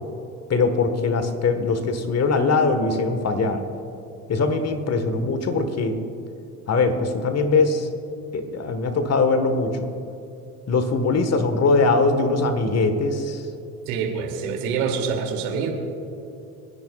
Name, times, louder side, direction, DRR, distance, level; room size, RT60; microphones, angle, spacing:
voice 1, 0.5-3.6 4.3-6.0 6.7-7.9 8.3-9.9 10.7-13.4, left 3 dB, 35° left, 8 dB, 1.5 m, -21 dB
voice 2, 13.9-15.7, right 6 dB, 70° right, 2 dB, 2.8 m, -26 dB
30.0 x 10.5 x 2.4 m, 2.8 s
hypercardioid pair, 70°, 45 cm